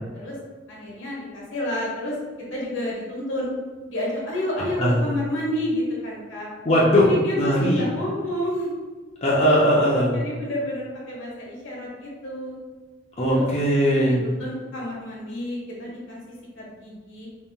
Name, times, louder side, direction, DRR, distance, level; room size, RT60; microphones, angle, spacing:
voice 1, 0.7-2.1 2.5-3.5 3.9-6.5 6.9-8.7 10.1-12.6 13.3-13.5 14.0-16.2 16.6-17.3, left 1 dB, 85° left, -4 dB, 1.4 m, -30 dB
voice 2, 6.6-7.0 7.4-7.9 9.2-10.2 13.2-14.2, equal, 35° left, -6 dB, 0.6 m, -19 dB
4.0 x 3.7 x 2.3 m, 1.3 s
head